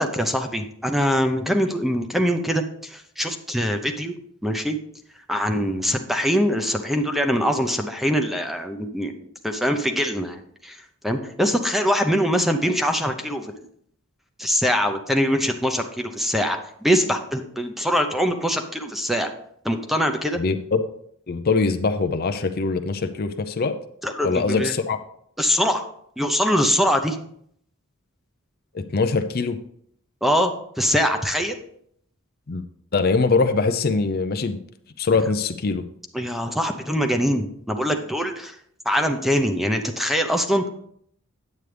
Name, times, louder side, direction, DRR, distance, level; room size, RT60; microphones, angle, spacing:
voice 1, 0.0-4.2 4.4-4.8 5.3-9.1 9.4-10.8 11.0-13.7 14.4-19.3 19.6-20.4 24.0-24.7 25.4-25.9 26.2-27.2 30.2-31.6 36.1-38.5 38.9-40.7, equal, ahead, 5 dB, 0.7 m, -23 dB
voice 2, 20.4-20.8 21.3-23.7 24.2-25.0 28.7-29.6 32.5-32.6 32.9-34.6 35.0-35.8, left 4 dB, 45° left, 8 dB, 0.5 m, -22 dB
9.2 x 8.3 x 3.3 m, 0.66 s
head